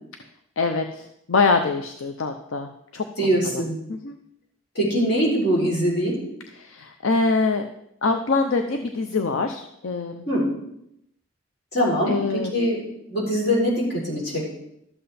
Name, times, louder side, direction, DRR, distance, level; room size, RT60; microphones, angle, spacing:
voice 1, 0.6-3.6 3.9-4.2 6.5-7.7 8.0-10.2 12.1-12.5, left 4 dB, 70° left, 6 dB, 0.6 m, -24 dB
voice 2, 3.2-3.8 4.8-6.2 10.3-10.4 11.7-12.8 13.1-14.5, equal, 50° left, -3 dB, 4.0 m, -22 dB
12.5 x 7.8 x 4.2 m, 0.79 s
head